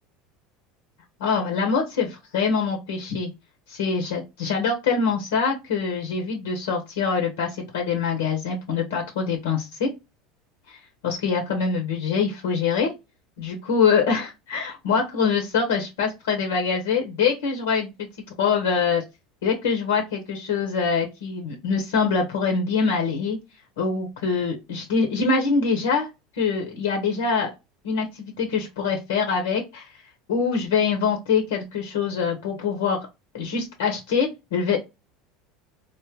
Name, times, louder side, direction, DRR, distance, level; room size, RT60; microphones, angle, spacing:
voice 1, 1.2-3.3 3.7-9.9 10.7-12.9 13.4-18.1 18.4-19.0 19.4-23.4 23.8-26.1 26.4-27.5 27.8-29.9 30.3-33.1 33.3-34.8, left 5 dB, 85° left, 3 dB, 0.9 m, -24 dB
3.6 x 2.1 x 2.9 m, 0.24 s
supercardioid pair, 95°, 0 cm